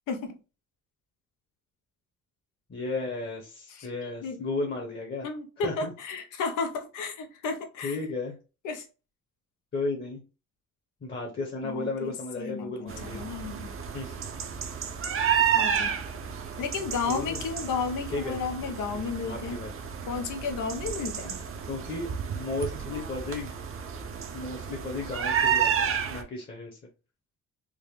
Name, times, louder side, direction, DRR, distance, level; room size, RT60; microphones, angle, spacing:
voice 1, 0.1-0.4 3.7-4.4 5.2-8.0 8.6-8.8 11.6-13.7 15.5-16.0 16.6-19.6 20.1-21.4, left 5 dB, 85° left, 0.9 m, -33 dB
voice 2, 2.7-5.3 5.6-5.9 7.8-8.3 9.7-10.2 11.0-13.2 13.9-14.3 17.1-17.4 18.1-18.4 18.6-18.7 19.2-19.7 21.7-23.5 24.3-26.8, left 3 dB, 35° left, 1.0 m, -34 dB
sound 1, 12.9-26.2, right 8 dB, 45° right, 0.7 m, -31 dB
3.7 x 2.1 x 3.2 m
cardioid pair, 90°, 30 cm